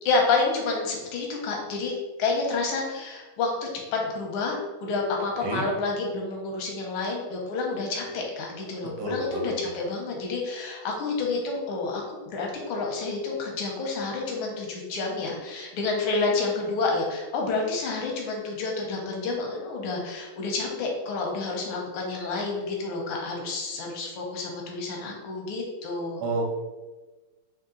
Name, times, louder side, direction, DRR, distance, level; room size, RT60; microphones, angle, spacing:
voice 1, 0.0-26.2, left 3 dB, 85° left, 0 dB, 1.5 m, -29 dB
voice 2, 9.0-9.5 26.2-26.6, right 2 dB, 65° right, 0 dB, 1.2 m, -30 dB
3.8 x 2.8 x 3.7 m, 1.2 s
omnidirectional pair, 2.3 m